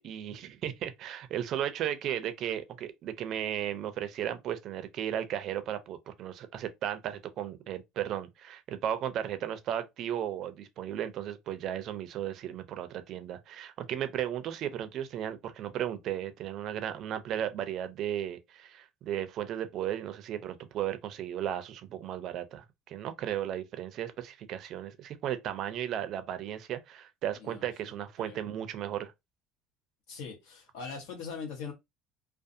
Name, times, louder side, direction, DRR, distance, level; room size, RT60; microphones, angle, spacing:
voice 1, 0.0-29.1, right 10 dB, 40° right, 0.4 m, -35 dB
voice 2, 27.4-27.9 28.2-28.4 30.1-31.7, left 5 dB, 85° left, 1.1 m, -41 dB
2.4 x 2.3 x 2.6 m
cardioid pair, 160°, 0 cm